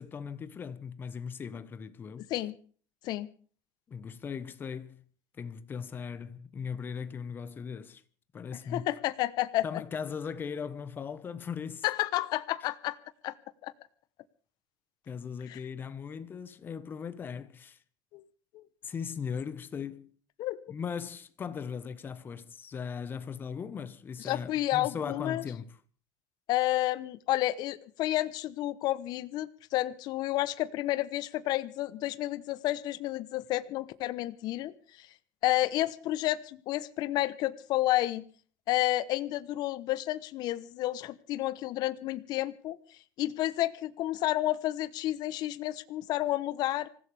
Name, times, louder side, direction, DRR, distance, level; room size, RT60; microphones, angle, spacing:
voice 1, 0.0-2.3 3.9-5.0 5.4-8.0 8.3-8.9 9.6-11.8 15.1-17.8 18.8-20.1 20.7-25.7, left 6 dB, 20° left, 1.1 m, -38 dB
voice 2, 8.7-9.7 11.8-13.0 13.2-13.3 13.6-13.7 15.5-15.6 18.1-18.2 18.5-18.6 20.4-20.6 24.2-25.4 26.5-35.1 35.4-38.2 38.7-42.8 43.2-46.9, left 15 dB, 45° left, 1.0 m, -30 dB
25.5 x 15.5 x 3.4 m
cardioid pair, 165°, 10 cm